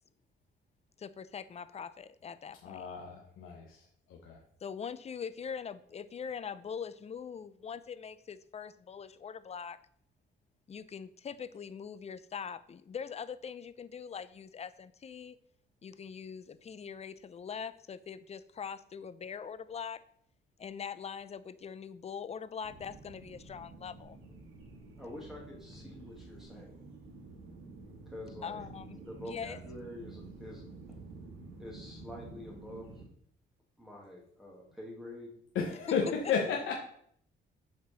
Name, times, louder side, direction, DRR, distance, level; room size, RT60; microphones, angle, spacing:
voice 1, 1.0-2.8 4.6-9.8 10.7-15.4 15.8-20.0 20.6-24.2 28.4-29.6 35.9-36.0, left 7 dB, 35° left, 14 dB, 0.5 m, -42 dB
voice 2, 2.6-3.8 4.1-4.4 35.5-36.7, left 6 dB, 80° left, 0 dB, 1.0 m, -33 dB
sound 1, 22.6-33.1, right 3 dB, 75° right, 1.8 m, -50 dB
voice 3, 25.0-26.8 28.1-28.6 29.0-30.7 31.6-32.9 33.8-35.3 36.0-36.1 36.3-36.5, left 1 dB, ahead, -4 dB, 1.9 m, -46 dB
7.6 x 4.4 x 4.1 m, 0.66 s
cardioid pair, 90°, 20 cm